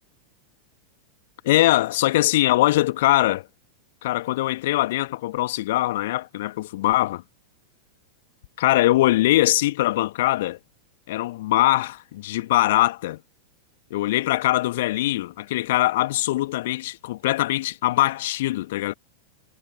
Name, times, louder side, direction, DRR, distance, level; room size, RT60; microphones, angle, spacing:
voice 1, 1.4-3.5 4.0-7.2 8.6-10.6 11.1-13.2 13.9-18.9, left 16 dB, 55° left, 1.9 m, -22 dB
figure-of-eight pair, 90°, 0 cm